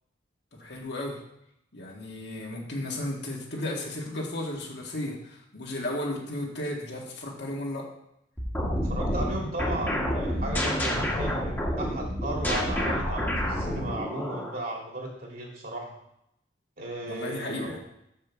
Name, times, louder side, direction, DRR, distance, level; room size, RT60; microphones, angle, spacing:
voice 1, 0.5-1.2 1.7-7.9 17.0-17.8, left 1 dB, 65° left, -2 dB, 2.0 m, -34 dB
sound 1, 8.4-14.6, equal, 10° left, 1.6 m, -29 dB
voice 2, 8.8-15.9 16.8-17.8, right 1 dB, 50° right, -1 dB, 2.4 m, -35 dB
6.7 x 5.5 x 6.9 m, 0.79 s
head